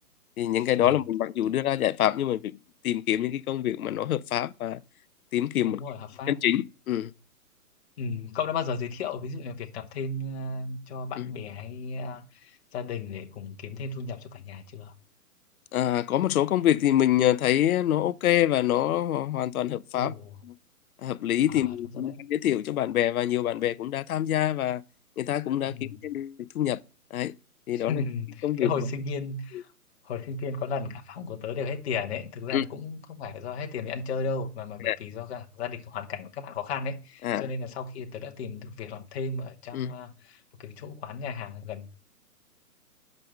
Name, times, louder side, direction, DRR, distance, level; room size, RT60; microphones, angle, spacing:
voice 1, 0.4-2.5 2.8-4.8 5.3-5.8 6.3-7.1 11.2-11.3 15.7-20.1 20.4-20.5 21.0-24.8 25.2-26.8 27.1-27.3 27.7-28.0 28.4-28.7 32.5-32.6 34.9-35.0 37.2-37.5 39.7-39.9, left 12 dB, 65° left, 0.6 m, -26 dB
voice 2, 5.6-6.6 8.0-14.9 19.9-20.4 21.5-22.2 25.6-26.0 27.7-29.7 30.0-41.9, left 4 dB, 45° left, 1.1 m, -35 dB
5.5 x 5.3 x 6.3 m
hypercardioid pair, 145°, 46 cm